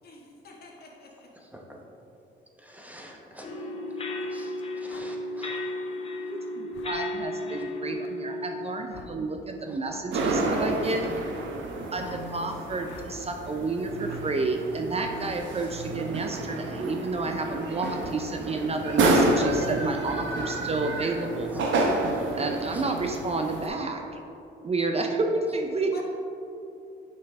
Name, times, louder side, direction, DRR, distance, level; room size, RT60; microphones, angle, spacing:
voice 1, 0.0-1.3 25.9-26.0, left 2 dB, 50° left, -1 dB, 1.4 m, -47 dB
voice 2, 2.6-3.5 4.3-4.5 4.8-5.6 6.0-6.3 9.7-9.8 21.5-21.6 22.7-22.8, equal, 10° right, 0 dB, 0.9 m, -47 dB
sound 1, 3.4-8.8, left 1 dB, 30° left, 1.0 m, -34 dB
sound 2, 4.9-5.1 6.7-6.9 8.9-9.2 9.8-10.1 12.0-12.3 12.8-13.1 14.1-14.2 15.1-15.4, left 6 dB, 85° left, 0.6 m, -48 dB
voice 3, 6.3-11.1 11.9-21.5 22.4-24.0 24.6-25.9, right 3 dB, 30° right, 3 dB, 0.5 m, -30 dB
sound 3, 10.1-23.7, right 2 dB, 75° right, 0.9 m, -29 dB
6.6 x 5.6 x 3.5 m, 2.8 s
cardioid pair, 90°, 20 cm